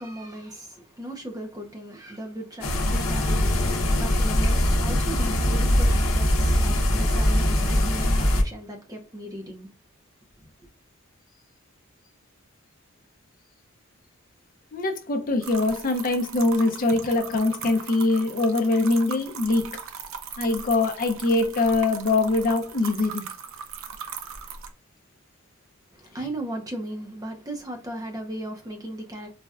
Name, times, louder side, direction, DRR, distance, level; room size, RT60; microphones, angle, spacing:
voice 1, 0.0-9.7 10.4-10.5 25.9-29.3, right 1 dB, 20° right, 0.5 m, -37 dB
sound 1, 2.6-8.4, left 1 dB, 85° left, 0.7 m, -22 dB
voice 2, 14.7-19.6 20.4-23.3, left 2 dB, 40° left, 0.5 m, -23 dB
sound 2, 15.4-24.7, right 7 dB, 75° right, 0.4 m, -39 dB
4.1 x 2.2 x 2.3 m
head